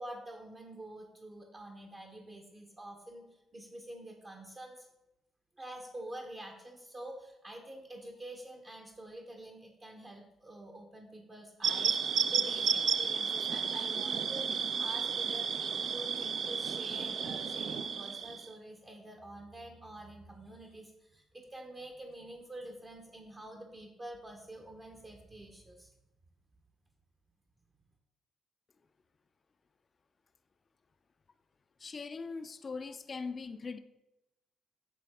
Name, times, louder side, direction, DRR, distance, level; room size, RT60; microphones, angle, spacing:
voice 1, 0.0-4.9 5.6-15.5 15.9-25.9, right 1 dB, 30° right, 2 dB, 0.7 m, -47 dB
sound 1, 11.6-18.5, right 6 dB, 60° right, 0.4 m, -32 dB
voice 2, 31.8-33.8, left 4 dB, 35° left, 10 dB, 0.3 m, -40 dB
8.4 x 3.5 x 3.5 m, 0.93 s
cardioid pair, 90°, 0 cm